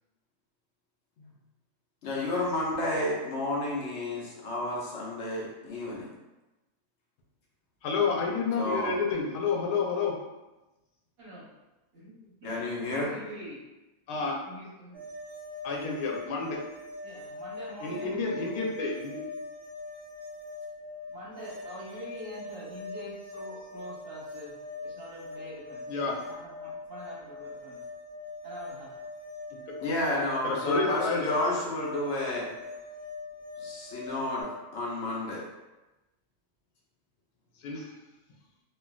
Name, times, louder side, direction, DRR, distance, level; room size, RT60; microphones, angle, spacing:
voice 1, 2.0-6.1 8.6-9.0 12.4-13.1 29.8-32.5 33.6-35.4, left 1 dB, 60° left, -4 dB, 0.8 m, -31 dB
voice 2, 7.8-10.1 14.1-14.4 15.6-16.6 17.8-19.2 25.9-26.1 30.4-31.3 37.6-37.9, left 4 dB, 85° left, 0 dB, 1.1 m, -29 dB
voice 3, 11.2-11.5 11.9-13.7 14.4-15.0 17.0-18.1 21.1-27.8 28.4-29.0, equal, 45° right, -6 dB, 0.9 m, -44 dB
sound 1, 14.9-34.4, left 3 dB, 80° right, 0.3 m, -42 dB
3.2 x 2.3 x 2.3 m, 1.1 s
omnidirectional pair, 1.6 m